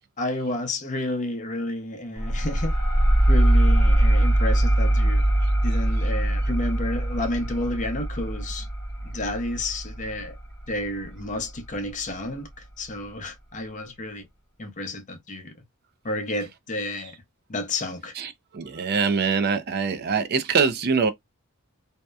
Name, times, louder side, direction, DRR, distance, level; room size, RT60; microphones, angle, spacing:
voice 1, 0.2-2.7 3.3-5.2 5.6-8.7 9.0-10.3 10.7-14.3 14.6-15.5 16.0-17.1 17.5-18.1, left 1 dB, 35° left, 0.6 m, -31 dB
sound 1, 2.2-11.4, right 1 dB, 10° left, 0.9 m, -22 dB
voice 2, 18.2-21.1, right 5 dB, 45° right, 0.4 m, -24 dB
2.7 x 2.1 x 2.2 m
head